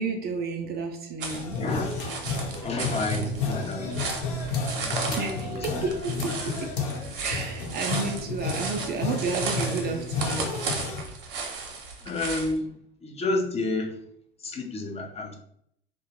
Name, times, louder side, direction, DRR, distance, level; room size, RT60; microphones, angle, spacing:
voice 1, 0.0-1.6 5.1-6.7 7.2-10.5, right 4 dB, 35° right, 4 dB, 0.5 m, -31 dB
sound 1, 1.2-12.5, right 4 dB, 65° right, 0.8 m, -35 dB
sound 2, 1.3-11.0, left 3 dB, 65° left, 0.9 m, -32 dB
voice 2, 1.5-1.9 2.6-3.9 4.8-5.6 12.0-12.7 13.0-13.9 14.4-15.4, left 2 dB, 20° left, 1 dB, 0.6 m, -30 dB
2.7 x 2.2 x 3.0 m, 0.68 s
figure-of-eight pair, 75°, 29 cm